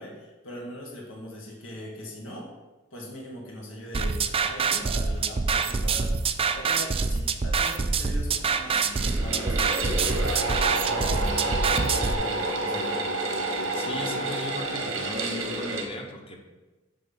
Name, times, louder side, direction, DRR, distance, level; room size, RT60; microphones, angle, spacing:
voice 1, 0.0-2.5 2.9-6.2 6.5-10.1 10.8-13.0 13.9-14.0, equal, 85° left, -2 dB, 1.5 m, -40 dB
sound 1, 3.9-12.1, right 4 dB, 30° right, 0.4 m, -26 dB
sound 2, 8.7-15.8, right 2 dB, 85° right, 1.3 m, -29 dB
voice 2, 13.7-16.4, left 1 dB, 30° left, 2 dB, 1.0 m, -37 dB
7.6 x 3.8 x 5.8 m, 1.1 s
head